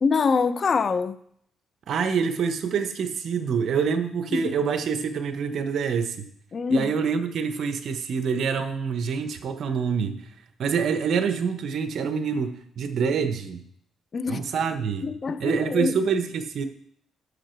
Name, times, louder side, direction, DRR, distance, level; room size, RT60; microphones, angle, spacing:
voice 1, 0.0-1.2 4.3-4.6 6.5-6.9 14.1-14.5 15.0-16.0, left 4 dB, 45° left, 0.7 m, -24 dB
voice 2, 1.9-6.3 6.7-10.2 10.6-13.6 14.3-15.1 15.4-16.7, right 6 dB, 65° right, 1.1 m, -26 dB
10.5 x 6.4 x 4.6 m
cardioid pair, 90°, 0 cm